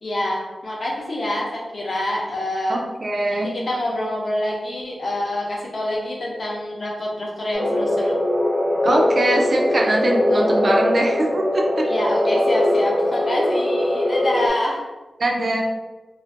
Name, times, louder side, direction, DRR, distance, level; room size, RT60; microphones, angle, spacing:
voice 1, 0.0-2.9 3.3-8.2 11.8-14.9, left 1 dB, 45° left, -3 dB, 0.6 m, -26 dB
voice 2, 2.7-3.5 8.8-11.9 15.2-15.6, right 1 dB, 40° right, 0 dB, 0.3 m, -22 dB
sound 1, 7.5-14.5, left 1 dB, ahead, 0.6 m, -21 dB
2.4 x 2.1 x 2.5 m, 1.1 s
wide cardioid pair, 145°, 0 cm